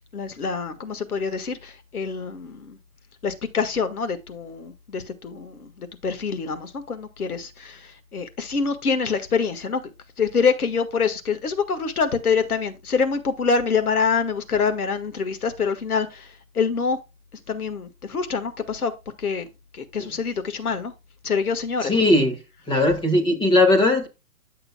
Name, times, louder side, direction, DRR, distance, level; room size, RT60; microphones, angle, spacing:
voice 1, 0.1-2.8 3.2-9.8 10.2-17.0 17.5-18.9 19.2-19.5 19.7-20.9 21.2-22.1, left 5 dB, 85° left, 1.7 m, -25 dB
voice 2, 21.8-22.4 22.7-24.1, left 2 dB, 10° left, 1.8 m, -18 dB
10.5 x 6.7 x 2.3 m
hypercardioid pair, 135°, 43 cm